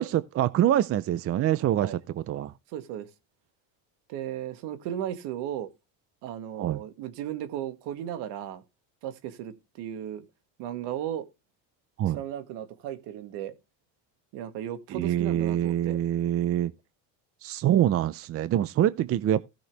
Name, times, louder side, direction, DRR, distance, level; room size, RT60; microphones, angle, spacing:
voice 1, 0.0-2.5 6.6-6.8 12.0-12.2 14.9-16.7 17.4-19.4, right 12 dB, 35° right, 0.5 m, -25 dB
voice 2, 2.7-3.1 4.1-5.7 6.2-8.6 9.0-10.2 10.6-11.3 12.1-13.5 14.3-16.0, right 11 dB, 75° right, 2.1 m, -35 dB
16.0 x 6.3 x 3.3 m
cardioid pair, 145°, 42 cm